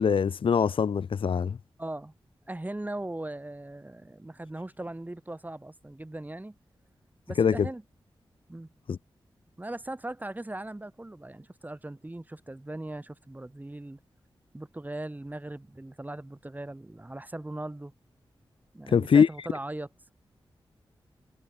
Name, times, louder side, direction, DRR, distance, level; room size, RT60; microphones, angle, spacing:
voice 1, 0.0-1.6 7.4-7.7 8.9-9.0 18.9-19.3, left 6 dB, 80° left, 1.2 m, -23 dB
voice 2, 1.8-2.1 2.5-6.5 7.3-7.8 8.5-8.7 9.6-14.0 14.5-17.9 18.7-19.9, right 1 dB, 20° right, 5.7 m, -39 dB
wide cardioid pair, 75°, 9 cm